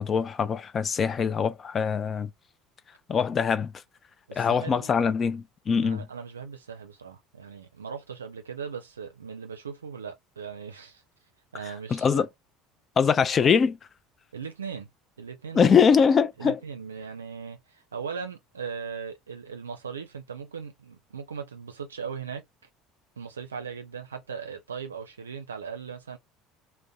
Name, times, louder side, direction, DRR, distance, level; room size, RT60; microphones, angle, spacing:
voice 1, 0.0-2.3 3.1-3.7 4.4-6.0 11.9-12.3 13.0-13.8 15.5-16.6, left 6 dB, 35° left, 0.4 m, -23 dB
voice 2, 4.3-4.9 5.8-11.0 11.5-12.2 14.3-14.9 15.2-15.7 16.4-22.4 23.2-26.2, right 6 dB, 85° right, 0.5 m, -38 dB
2.6 x 2.1 x 2.3 m
hypercardioid pair, 65°, 0 cm